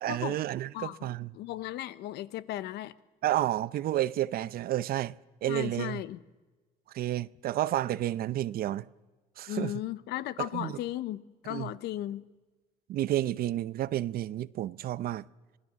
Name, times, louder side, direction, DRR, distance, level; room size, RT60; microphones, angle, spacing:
voice 1, 0.0-1.3 3.2-5.1 5.4-6.0 6.9-8.9 9.4-9.7 10.4-10.8 11.5-11.7 12.9-15.2, right 13 dB, 60° right, 0.6 m, -31 dB
voice 2, 0.7-2.9 5.5-6.2 9.5-12.3, left 14 dB, 80° left, 0.8 m, -36 dB
26.0 x 17.0 x 7.5 m
cardioid pair, 110°, 17 cm